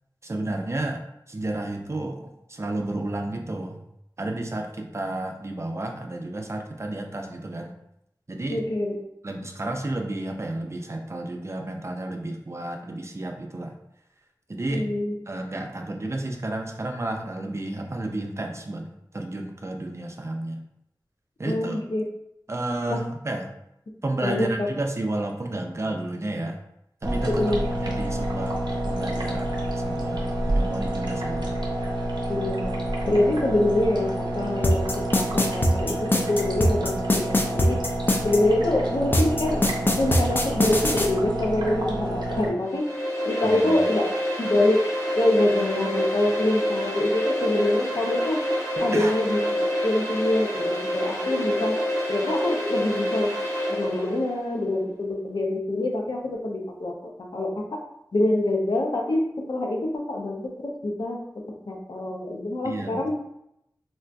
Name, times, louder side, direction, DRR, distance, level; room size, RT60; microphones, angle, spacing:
voice 1, 0.2-1.0 1.3-3.8 4.2-7.7 8.3-8.6 9.2-13.8 14.5-14.9 15.3-18.9 19.1-20.6 21.4-21.8 22.5-23.6 24.0-26.6 27.0-28.6 28.9-30.3 30.6-31.6 43.4-43.9 48.8-49.2 62.6-63.0, right 2 dB, 40° right, 3 dB, 0.4 m, -31 dB
voice 2, 8.5-9.0 14.7-15.1 21.4-22.0 22.9-23.0 24.2-24.7 27.3-27.7 32.3-32.8 33.0-37.8 38.2-39.6 40.0-42.8 43.2-44.1 44.4-44.8 45.2-48.4 48.8-49.4 49.8-51.7 52.1-53.3 53.7-56.9 57.2-57.8 58.1-61.2 61.7-63.1, left 1 dB, 75° left, 0 dB, 0.6 m, -25 dB
sound 1, 27.0-42.5, right 1 dB, 85° right, 0.6 m, -28 dB
sound 2, 34.6-38.4 39.1-41.1, left 1 dB, 30° left, 0.5 m, -21 dB
sound 3, 42.6-54.3, equal, 45° left, 1.2 m, -27 dB
3.8 x 2.4 x 2.2 m, 0.80 s
wide cardioid pair, 55°, 7 cm